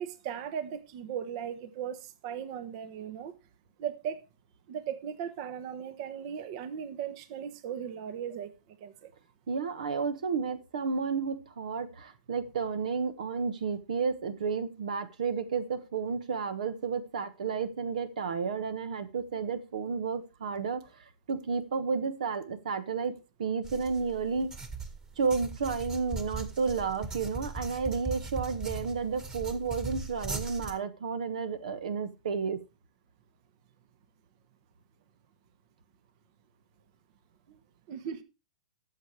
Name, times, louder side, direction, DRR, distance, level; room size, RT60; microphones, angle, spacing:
voice 1, 0.0-3.3 3.8-4.2 4.7-8.5 8.8-9.1 37.9-38.2, right 8 dB, 45° right, 1.2 m, -37 dB
voice 2, 9.5-24.5 25.2-32.6, right 5 dB, 70° right, 1.3 m, -32 dB
sound 1, 23.6-30.7, right 3 dB, 15° right, 1.9 m, -39 dB
13.5 x 7.0 x 4.7 m
hypercardioid pair, 115°, 4 cm